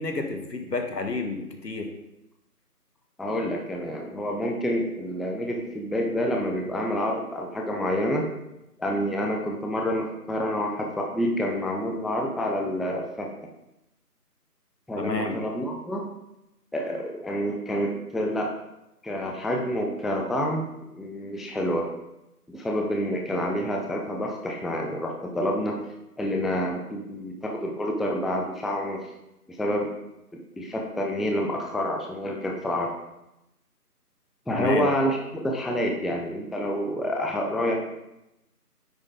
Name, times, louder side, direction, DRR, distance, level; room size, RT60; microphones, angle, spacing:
voice 1, 0.0-1.9 15.0-15.4 34.5-34.9, left 3 dB, 80° left, 5 dB, 1.3 m, -30 dB
voice 2, 3.2-8.3 8.8-13.3 14.9-16.0 16.7-18.5 19.0-20.6 21.0-21.9 22.5-25.8 26.2-29.0 29.6-29.9 30.6-32.9 34.5-37.7, equal, ahead, 0 dB, 0.5 m, -28 dB
9.6 x 3.7 x 4.0 m, 0.89 s
figure-of-eight pair, 175°, 48 cm